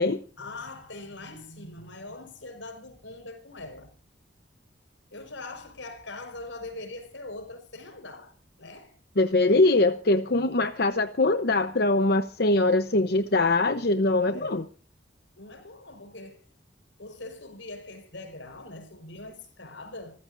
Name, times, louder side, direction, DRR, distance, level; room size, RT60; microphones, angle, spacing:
voice 1, 0.4-3.9 5.1-9.0 10.2-10.7 14.3-14.6 15.4-16.5 17.0-20.2, left 2 dB, 85° left, 5.0 m, -42 dB
voice 2, 9.2-14.6, left 2 dB, 55° left, 0.9 m, -22 dB
28.0 x 15.0 x 2.6 m
head